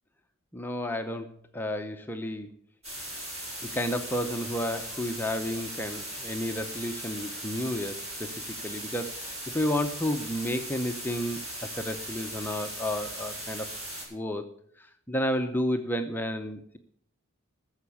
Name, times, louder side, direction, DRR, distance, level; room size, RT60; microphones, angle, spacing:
voice 1, 0.5-2.5 3.6-13.7 14.1-16.8, equal, 10° left, 6 dB, 0.6 m, -32 dB
sound 1, 2.8-14.0, right 1 dB, 30° right, 6.6 m, -38 dB
14.5 x 7.0 x 7.0 m, 0.66 s
head